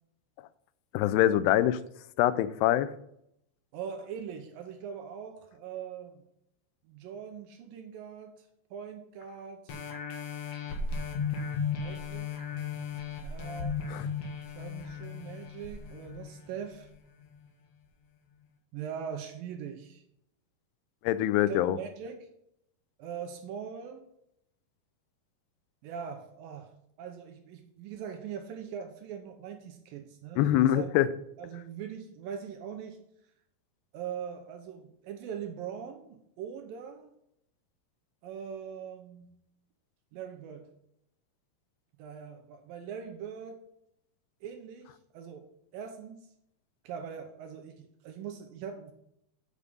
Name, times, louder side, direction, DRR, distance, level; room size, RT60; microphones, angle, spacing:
voice 1, 0.9-1.8 2.2-2.9 13.9-14.0 21.0-21.8 30.4-31.1, left 13 dB, 85° left, 15 dB, 2.6 m, -24 dB
voice 2, 3.7-6.2 6.8-8.4 8.7-9.8 11.7-12.3 13.2-14.0 14.5-16.9 18.7-20.0 21.5-22.3 23.0-24.1 25.8-26.7 27.0-30.9 31.4-33.0 33.9-37.2 38.2-39.3 40.1-40.7 42.0-43.6 44.4-46.3 46.8-48.9, right 7 dB, 75° right, 4 dB, 2.3 m, -41 dB
sound 1, 9.7-16.9 17.4-17.5, left 5 dB, 55° left, 1.9 m, -36 dB
8.5 x 6.2 x 5.4 m, 0.77 s
omnidirectional pair, 4.6 m